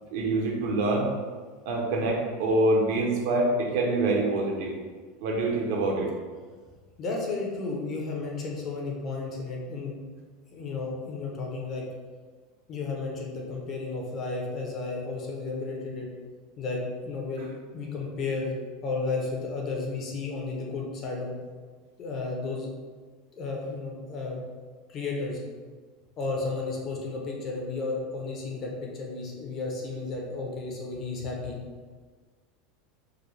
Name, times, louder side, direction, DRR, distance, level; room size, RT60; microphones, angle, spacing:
voice 1, 0.1-1.1 1.7-4.7 5.2-6.1, right 2 dB, 65° right, -1 dB, 0.8 m, -25 dB
voice 2, 7.0-10.0 10.5-11.9 12.7-16.1 16.6-17.5 17.7-18.6 18.8-21.3 22.0-22.7 23.3-24.4 24.9-25.4 26.2-31.6, left 3 dB, 35° left, -1 dB, 0.7 m, -33 dB
4.8 x 2.2 x 3.2 m, 1.5 s
supercardioid pair, 155°, 0 cm